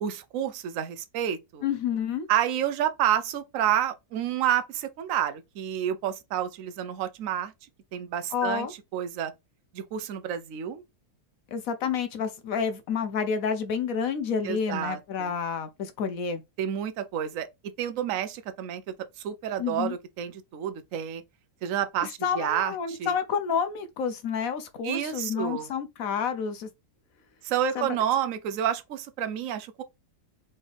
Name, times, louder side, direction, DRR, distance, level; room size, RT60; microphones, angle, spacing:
voice 1, 0.0-1.6 2.3-7.5 7.9-8.7 8.9-9.3 9.7-10.8 14.4-15.4 16.6-17.5 17.8-18.8 19.2-21.2 21.6-23.1 24.8-25.7 27.4-29.8, right 10 dB, 65° right, 0.9 m, -29 dB
voice 2, 1.6-2.3 8.3-8.7 11.5-16.4 19.6-19.9 22.2-26.7 27.7-27.9, left 6 dB, 65° left, 1.0 m, -29 dB
4.0 x 3.9 x 3.3 m
omnidirectional pair, 1.8 m